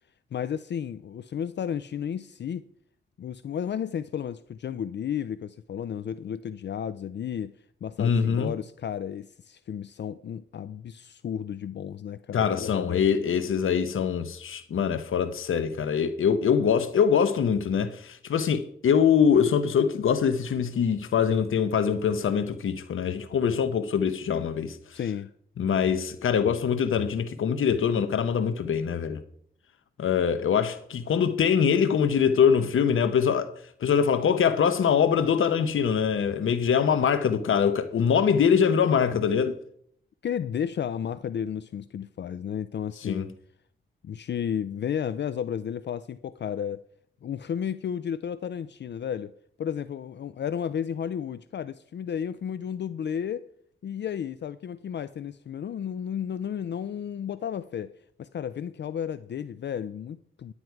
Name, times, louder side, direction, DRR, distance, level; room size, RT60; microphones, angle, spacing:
voice 1, 0.3-2.6 3.2-7.5 7.8-13.1 24.9-25.3 40.2-43.3 44.0-46.8 47.2-49.3 49.6-53.5 53.8-60.5, left 8 dB, 60° left, 0.4 m, -33 dB
voice 2, 8.0-8.5 12.3-25.0 25.6-29.2 30.0-33.5 33.8-39.6 43.1-43.3, left 7 dB, 90° left, 0.9 m, -23 dB
11.0 x 9.8 x 4.6 m
wide cardioid pair, 115°, 20 cm